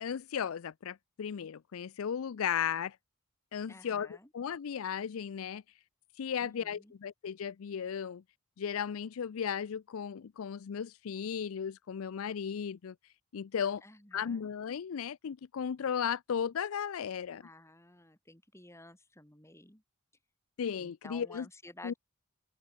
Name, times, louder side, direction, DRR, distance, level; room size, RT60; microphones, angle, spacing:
voice 1, 0.0-3.0 3.5-5.6 6.2-8.2 8.6-12.9 13.3-13.8 14.1-17.4 20.6-21.5 21.8-21.9, left 7 dB, 75° left, 0.4 m, -35 dB
voice 2, 3.7-4.3 6.4-6.9 13.8-14.5 17.4-19.8 20.8-22.0, left 2 dB, 15° left, 6.6 m, -53 dB
open air
head